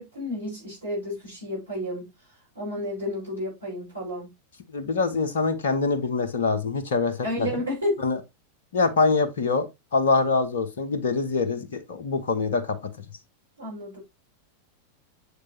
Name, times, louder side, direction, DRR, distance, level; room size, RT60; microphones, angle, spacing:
voice 1, 0.0-2.1 2.6-4.3 7.2-8.0 13.6-14.0, left 1 dB, 75° right, 5.2 m, -31 dB
voice 2, 4.7-7.6 8.0-8.2 8.7-9.7 9.9-12.8, left 4 dB, 60° left, 1.1 m, -24 dB
7.5 x 6.6 x 2.8 m
figure-of-eight pair, 90°, 0 cm